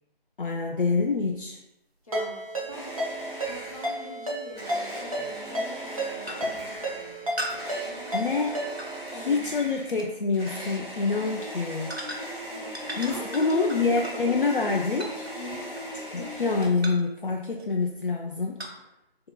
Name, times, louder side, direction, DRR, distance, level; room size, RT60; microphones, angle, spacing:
voice 1, 0.4-1.6 8.1-8.5 9.1-11.9 13.0-15.3 16.1-18.6, left 4 dB, 60° left, 1 dB, 0.5 m, -26 dB
sound 1, 1.3-1.4 3.9-4.0 5.2-5.4 5.8-6.0 6.3-6.7 7.4-9.5 9.9-10.1 10.8-11.0 11.9-12.5 12.7-16.3 16.6-17.1 17.6-17.9 18.6-18.7, right 1 dB, 90° right, 1.0 m, -39 dB
voice 2, 2.0-2.9 3.4-7.3 9.1-9.4 12.5-14.8 15.4-15.7, left 2 dB, 35° left, -3 dB, 1.0 m, -43 dB
Ringtone, 2.1-9.0, right 1 dB, 35° right, 0.9 m, -33 dB
sound 2, 2.7-4.1 4.5-16.7, right 1 dB, ahead, 1.4 m, -39 dB
7.9 x 2.9 x 2.2 m, 0.89 s
figure-of-eight pair, 160°, 31 cm